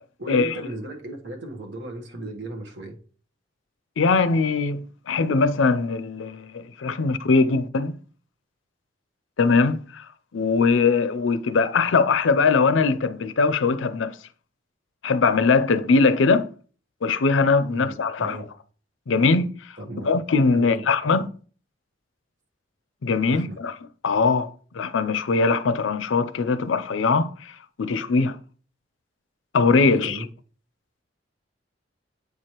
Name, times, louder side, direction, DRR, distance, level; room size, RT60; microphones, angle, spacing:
voice 1, 0.2-3.0 17.7-18.4 19.8-20.1 20.5-20.9 23.3-23.6 29.9-30.3, right 2 dB, 60° right, 1.2 m, -35 dB
voice 2, 4.0-7.9 9.4-10.1 10.3-14.2 15.0-16.5 17.0-18.4 19.1-19.5 20.0-21.3 23.0-23.7 24.0-27.3 27.8-28.4 29.5-30.2, left 4 dB, 85° left, 0.5 m, -21 dB
8.2 x 4.7 x 3.0 m
head